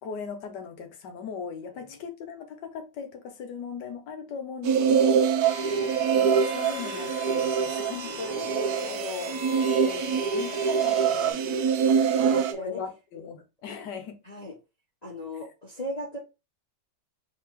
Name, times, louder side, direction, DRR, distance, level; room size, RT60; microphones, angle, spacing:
voice 1, 0.0-5.2 6.1-9.4 9.8-14.2, left 6 dB, 70° left, 1.5 m, -39 dB
sound 1, 4.6-12.5, right 7 dB, 70° right, 0.9 m, -24 dB
voice 2, 4.8-5.1 5.6-6.1 8.0-8.3 9.7-10.4 12.2-12.8 14.3-14.5 15.0-16.2, equal, 35° left, 0.7 m, -39 dB
sound 2, 5.4-11.3, left 6 dB, 85° left, 1.5 m, -39 dB
3.3 x 2.9 x 4.4 m
omnidirectional pair, 2.0 m